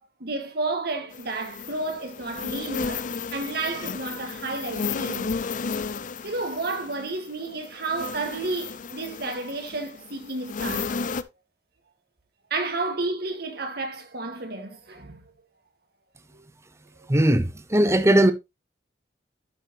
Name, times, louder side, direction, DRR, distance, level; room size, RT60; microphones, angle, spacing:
voice 1, 0.2-5.4 6.2-10.9 12.5-15.3 16.3-16.4 17.0-17.1, right 3 dB, 60° right, 1.7 m, -31 dB
sound 1, 1.1-11.2, left 5 dB, 45° left, 0.5 m, -33 dB
voice 2, 17.1-18.3, right 1 dB, 15° right, 0.8 m, -19 dB
12.0 x 5.9 x 2.9 m
head